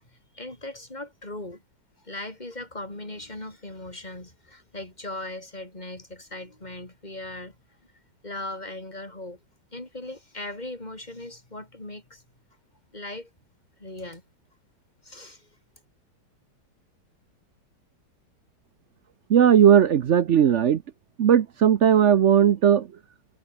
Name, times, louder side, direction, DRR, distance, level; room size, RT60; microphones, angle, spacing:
voice 1, 0.3-1.6 2.0-7.5 8.2-9.4 9.7-12.2 12.9-13.3 13.8-14.2 15.0-15.5, left 2 dB, 20° left, 5.0 m, -38 dB
voice 2, 19.3-20.8 21.2-22.9, right 9 dB, 70° right, 0.6 m, -17 dB
omnidirectional pair, 2.2 m